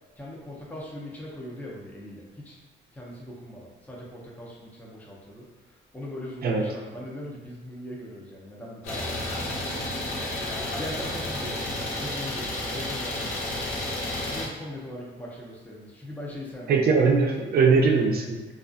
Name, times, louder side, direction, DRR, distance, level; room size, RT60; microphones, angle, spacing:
voice 1, 0.2-2.6 2.9-5.5 5.9-10.2 10.8-13.6 14.2-16.8, left 1 dB, 10° left, -4 dB, 0.5 m, -40 dB
Idling, 8.8-14.5, left 1 dB, 85° left, 0.6 m, -31 dB
voice 2, 16.7-18.5, right 4 dB, 50° right, 1 dB, 0.4 m, -21 dB
2.4 x 2.3 x 2.5 m, 1.3 s
cardioid pair, 90°, 20 cm